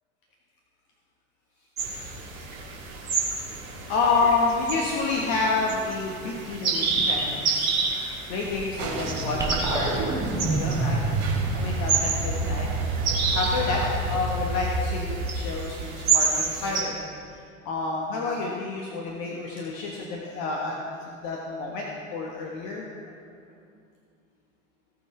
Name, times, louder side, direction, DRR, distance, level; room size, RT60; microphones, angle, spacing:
sound 1, 1.8-16.8, right 4 dB, 75° right, 2.4 m, -30 dB
voice 1, 3.9-11.3 11.5-12.7 13.3-17.0 17.3-17.4 17.6-21.9 22.1-22.9, left 3 dB, 50° left, -2 dB, 1.5 m, -29 dB
sound 2, 8.8-14.2, right 3 dB, 55° right, 3.3 m, -35 dB
sound 3, 9.4-15.9, right 2 dB, 5° right, 2.7 m, -28 dB
18.0 x 6.0 x 4.5 m, 2.3 s
figure-of-eight pair, 70°, 42 cm